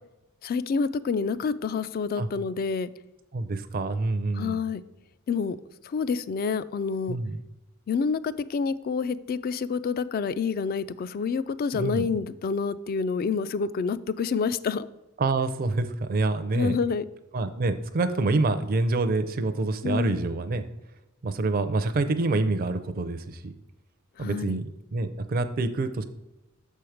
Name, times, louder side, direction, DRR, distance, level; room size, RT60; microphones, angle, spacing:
voice 1, 0.4-2.9 4.3-4.8 5.3-5.6 5.8-7.2 7.9-14.9 16.6-17.1 19.8-20.2 24.2-24.6, left 5 dB, 45° left, 16 dB, 0.3 m, -28 dB
voice 2, 3.3-4.6 7.1-7.4 11.7-12.1 15.2-16.8 17.3-20.6 21.2-23.5 24.2-24.6 24.9-26.0, right 3 dB, 45° right, 8 dB, 0.4 m, -26 dB
6.9 x 4.6 x 4.9 m, 0.99 s
head